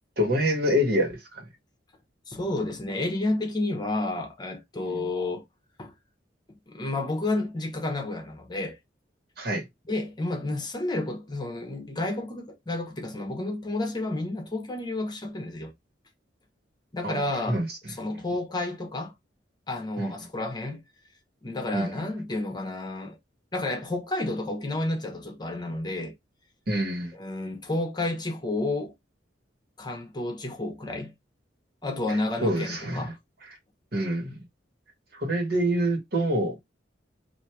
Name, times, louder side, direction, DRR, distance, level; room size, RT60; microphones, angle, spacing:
voice 1, 0.2-1.5 4.9-5.0 9.4-9.7 17.0-17.8 20.0-20.1 21.7-22.0 26.7-27.1 32.4-33.1 33.9-34.4 35.1-36.6, equal, 60° right, 1.6 m, -26 dB
voice 2, 2.3-5.4 5.8-5.9 6.7-8.8 9.9-15.7 16.9-17.6 18.0-19.1 19.7-20.8 21.4-23.2 23.5-26.1 27.2-28.9 29.8-31.1 31.8-33.1, left 2 dB, 25° left, 1.0 m, -31 dB
3.3 x 2.7 x 4.4 m
head